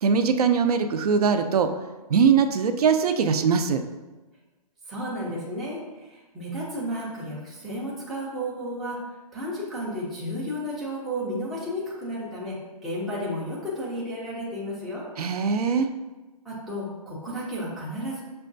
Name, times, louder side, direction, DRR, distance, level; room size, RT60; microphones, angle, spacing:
voice 1, 0.0-1.7 2.1-3.8 15.2-15.9, right 6 dB, 75° right, 8 dB, 0.4 m, -21 dB
voice 2, 4.9-9.0 9.3-15.0 16.4-18.2, equal, ahead, -8 dB, 0.3 m, -32 dB
6.1 x 2.2 x 2.6 m, 1.2 s
hypercardioid pair, 155°, 20 cm